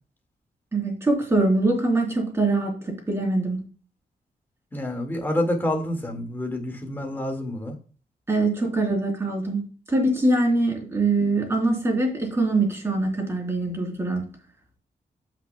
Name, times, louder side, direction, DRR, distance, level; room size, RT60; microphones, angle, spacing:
voice 1, 0.7-3.6 8.3-14.2, right 2 dB, 15° right, -1 dB, 3.5 m, -23 dB
voice 2, 4.7-7.8, left 1 dB, 15° left, 2 dB, 1.8 m, -28 dB
14.5 x 6.0 x 2.2 m, 0.37 s
wide cardioid pair, 175°, 16 cm